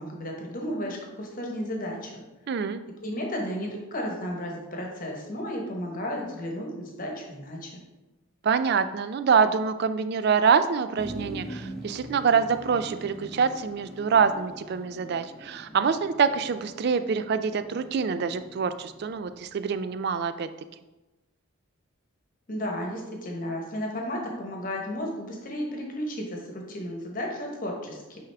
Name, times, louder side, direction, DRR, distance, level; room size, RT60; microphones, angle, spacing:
voice 1, 0.0-2.2 3.0-7.7 22.5-28.2, equal, 40° left, 0 dB, 1.1 m, -33 dB
voice 2, 2.5-2.8 8.4-20.5, right 6 dB, 50° right, 11 dB, 0.3 m, -25 dB
Motor vehicle (road), 11.0-19.9, right 1 dB, 5° left, 0.9 m, -43 dB
8.8 x 3.5 x 3.4 m, 1.1 s
head